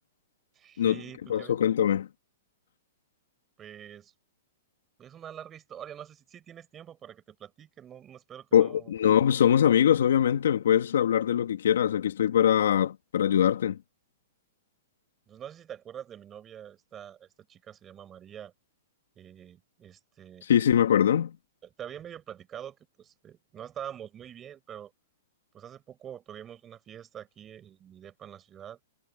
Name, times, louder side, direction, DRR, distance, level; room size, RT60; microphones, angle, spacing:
voice 1, 0.6-1.6 3.6-4.1 5.0-8.9 15.3-18.5 19.2-20.5 21.6-24.9 25.5-28.8, right 9 dB, 15° right, 7.0 m, -45 dB
voice 2, 1.3-2.1 8.5-13.8 20.5-21.3, left 9 dB, 75° left, 2.3 m, -22 dB
hypercardioid pair, 165°, 0 cm